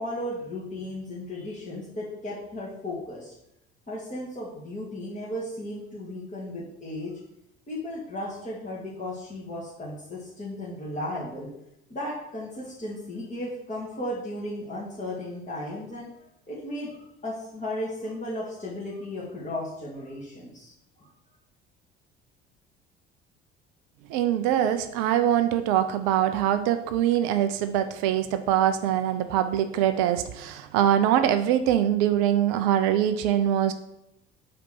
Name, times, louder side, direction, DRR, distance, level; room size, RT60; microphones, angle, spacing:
voice 1, 0.0-3.3 3.9-7.2 7.7-11.5 11.9-16.1 16.5-17.0 17.2-20.7 21.0-21.1, left 1 dB, 25° left, -8 dB, 2.2 m, -35 dB
voice 2, 24.1-33.7, right 11 dB, 55° right, 10 dB, 0.6 m, -23 dB
5.0 x 4.4 x 5.9 m, 0.81 s
figure-of-eight pair, 55°, 32 cm